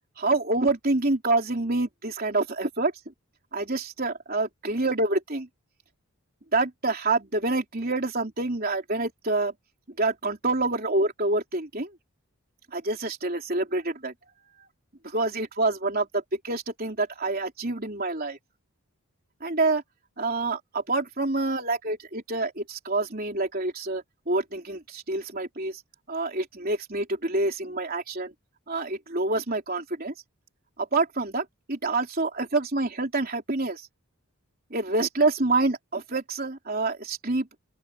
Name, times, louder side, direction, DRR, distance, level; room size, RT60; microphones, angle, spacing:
voice 1, 0.2-2.9 3.5-5.5 6.5-9.5 10.0-11.9 12.7-14.1 15.0-18.4 19.4-19.8 20.2-25.8 26.1-28.3 28.7-30.1 30.8-33.9 34.7-37.5, right 2 dB, 40° right, 3.6 m, -27 dB
open air
head